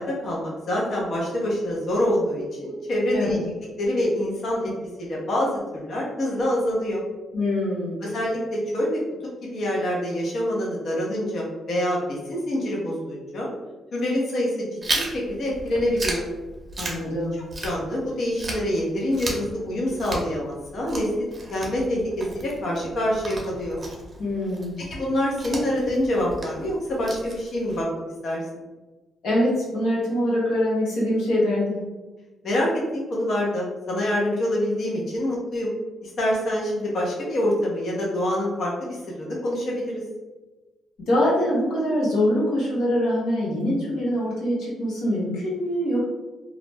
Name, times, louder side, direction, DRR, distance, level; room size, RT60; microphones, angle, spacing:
voice 1, 0.0-3.4 3.8-4.7 5.0-7.0 8.0-9.0 9.4-13.5 13.9-16.3 17.6-21.1 21.5-23.8 24.9-27.9 28.2-28.4 32.4-35.7 36.0-40.0, left 1 dB, 60° left, -4 dB, 0.8 m, -26 dB
voice 2, 7.3-8.0 16.8-17.4 24.2-24.8 29.2-31.8 41.0-46.0, left 1 dB, 85° left, -5 dB, 1.0 m, -24 dB
Chewing mastication, 14.8-18.1 18.4-27.8, right 2 dB, 35° right, 0.7 m, -34 dB
2.4 x 2.0 x 3.3 m, 1.2 s
cardioid pair, 85°, 0 cm